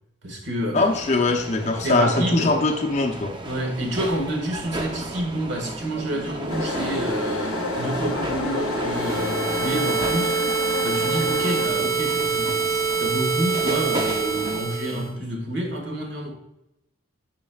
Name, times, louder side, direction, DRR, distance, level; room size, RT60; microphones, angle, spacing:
voice 1, 0.2-0.8 1.8-2.5 3.4-10.4 10.8-16.3, right 1 dB, 55° right, 2 dB, 1.7 m, -28 dB
voice 2, 0.7-3.3, left 3 dB, 35° left, 1 dB, 0.7 m, -22 dB
sound 1, 0.8-14.6, right 1 dB, 20° right, 0.6 m, -32 dB
sound 2, 6.5-11.7, left 5 dB, 80° left, 0.5 m, -31 dB
sound 3, 8.9-15.1, right 5 dB, 80° right, 1.3 m, -25 dB
10.5 x 5.3 x 2.3 m, 0.89 s
head